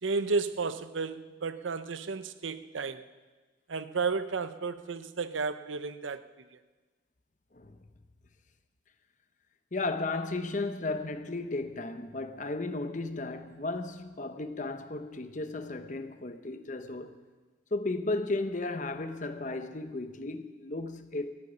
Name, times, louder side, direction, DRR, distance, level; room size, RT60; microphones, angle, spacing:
voice 1, 0.0-3.0 3.7-6.2 6.5-6.6, right 4 dB, 85° right, 0.7 m, -32 dB
voice 2, 9.7-17.2 17.7-21.3, left 2 dB, 40° left, 0.9 m, -34 dB
14.5 x 8.3 x 9.9 m
head